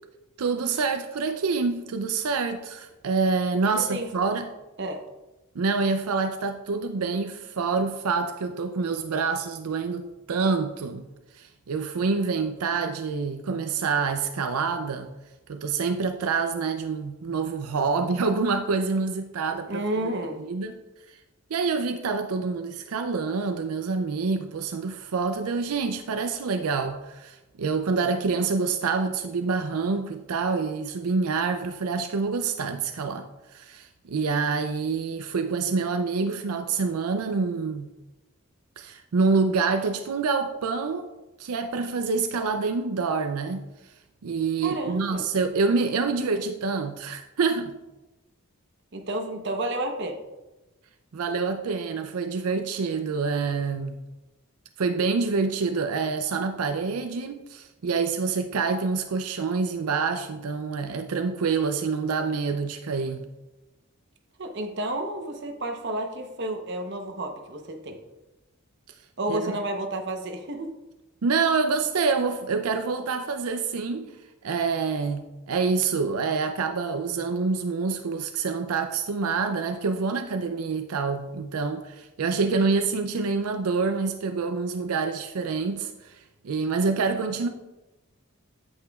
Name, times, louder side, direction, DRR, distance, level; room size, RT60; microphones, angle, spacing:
voice 1, 0.4-4.5 5.6-11.0 11.3-15.1 15.5-20.1 20.5-20.8 21.1-21.2 21.5-37.9 38.8-41.1 41.4-43.6 44.2-47.7 51.1-54.0 54.8-63.3 69.3-69.5 71.2-74.1 74.4-87.5, right 4 dB, 85° right, 7 dB, 0.5 m, -27 dB
voice 2, 3.8-4.1 4.8-5.0 19.7-20.4 44.6-45.3 48.9-50.2 64.4-68.0 69.2-70.7, right 1 dB, 50° right, 5 dB, 0.8 m, -31 dB
8.4 x 8.1 x 2.3 m, 1.0 s
head